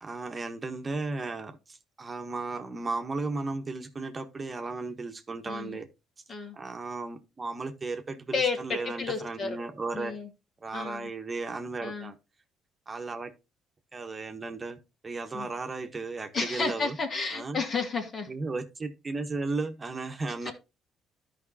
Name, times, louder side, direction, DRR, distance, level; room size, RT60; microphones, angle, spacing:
voice 1, 0.0-5.9 6.5-10.2 10.6-12.2 12.9-13.3 13.9-14.8 15.0-17.0 17.3-17.6 18.3-20.5, right 3 dB, 35° right, 1.3 m, -35 dB
voice 2, 5.5-5.8 6.3-6.6 8.3-9.6 9.9-10.3 10.7-11.1 11.8-12.1 15.3-15.5 16.3-18.3 20.4-20.5, left 4 dB, 50° left, 2.4 m, -32 dB
13.0 x 5.2 x 2.8 m
hypercardioid pair, 55°, 0 cm